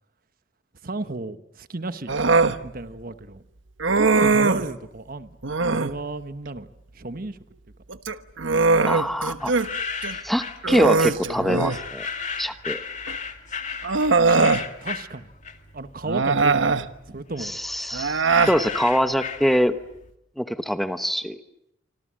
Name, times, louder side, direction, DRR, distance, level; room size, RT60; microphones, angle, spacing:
voice 1, 0.8-2.1 2.6-3.4 4.0-5.4 5.7-6.7 6.9-7.4 14.0-15.3 15.7-17.6, right 2 dB, 50° right, 11 dB, 1.2 m, -33 dB
Human voice, 2.1-2.6 3.8-4.7 5.4-6.0 7.9-9.7 10.0-10.2 10.6-11.9 13.1-13.2 13.8-14.7 16.0-16.9 17.9-18.6, right 4 dB, 80° right, 1.2 m, -21 dB
voice 2, 8.9-9.5 10.2-12.1 12.4-12.8 17.4-19.8 20.4-21.4, equal, ahead, 9 dB, 1.0 m, -24 dB
sound 1, 9.4-10.7 11.6-15.9 16.2-20.0, left 6 dB, 40° left, 2.2 m, -34 dB
26.5 x 25.5 x 7.6 m, 0.82 s
head